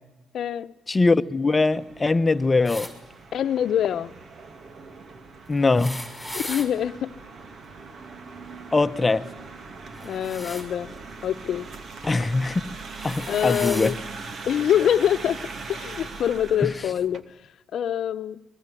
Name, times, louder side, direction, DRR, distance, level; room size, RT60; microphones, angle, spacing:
voice 1, 0.3-0.7 3.3-4.1 6.3-7.1 10.0-10.9 11.2-11.7 13.3-14.0 14.4-15.4 15.7-17.2 17.7-18.4, left 10 dB, 65° left, 1.0 m, -25 dB
voice 2, 0.9-2.9 5.5-6.0 8.7-9.3 12.1-12.8 13.0-13.9 16.6-16.7, left 3 dB, 25° left, 1.1 m, -22 dB
sound 1, 1.6-17.2, right 4 dB, 50° right, 2.4 m, -41 dB
sound 2, 2.6-2.9 5.6-6.7 9.9-10.7 12.0-12.2 12.8-14.0 15.0-15.1 16.3-16.4, left 1 dB, ahead, 5.6 m, -37 dB
24.5 x 21.5 x 10.0 m
cardioid pair, 90°, 0 cm